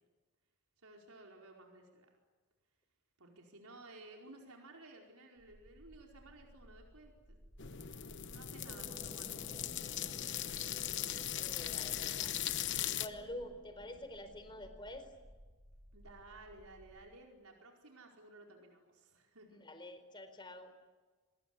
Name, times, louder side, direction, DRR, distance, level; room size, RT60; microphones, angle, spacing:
voice 1, 0.8-2.2 3.2-7.4 8.3-9.6 9.9-10.3 15.9-19.6, right 2 dB, 80° right, 1 dB, 4.8 m, -56 dB
sound 1, 5.4-17.1, equal, 60° right, 7.9 m, -60 dB
sound 2, 7.6-13.1, left 11 dB, 55° left, 1.1 m, -39 dB
sound 3, 8.7-15.3, equal, 20° right, 1.4 m, -56 dB
voice 2, 11.4-12.4 12.9-15.1 19.5-20.7, left 1 dB, 20° left, 9 dB, 4.1 m, -48 dB
26.5 x 21.5 x 9.8 m, 1.3 s
head